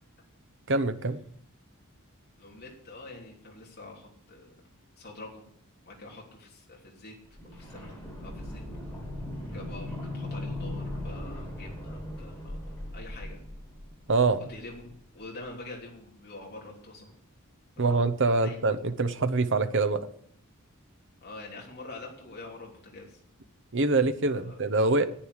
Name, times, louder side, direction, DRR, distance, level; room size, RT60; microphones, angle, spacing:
voice 1, 0.7-1.2 14.1-14.4 17.8-20.0 23.7-25.1, right 3 dB, 60° right, 10 dB, 0.9 m, -25 dB
voice 2, 2.4-4.6 5.0-5.4 5.8-7.2 7.4-8.6 9.5-13.4 14.4-17.1 17.8-18.6 21.2-23.2 24.3-24.6, left 2 dB, 50° left, -2 dB, 3.3 m, -46 dB
sound 1, 7.3-15.1 15.3-15.4, left 1 dB, 10° left, 5.0 m, -39 dB
10.5 x 9.3 x 8.1 m, 0.63 s
head